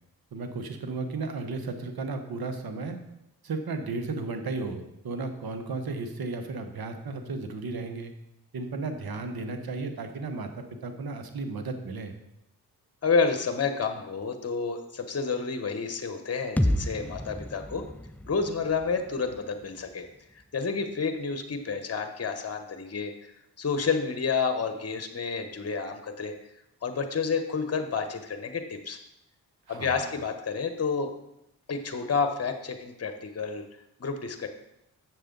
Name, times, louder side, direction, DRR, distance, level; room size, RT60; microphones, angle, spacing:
voice 1, 0.3-3.0 3.4-8.1 8.5-12.1 29.7-30.1, right 3 dB, 65° right, 7 dB, 1.2 m, -34 dB
voice 2, 13.0-17.8 18.3-20.1 20.3-23.1 23.6-26.3 26.8-29.0 29.7-31.1 31.7-33.6 34.0-34.5, left 5 dB, 40° left, 7 dB, 1.0 m, -29 dB
sound 1, 16.6-20.4, left 1 dB, 5° left, 0.4 m, -32 dB
7.5 x 6.7 x 3.9 m, 0.83 s
supercardioid pair, 45°, 39 cm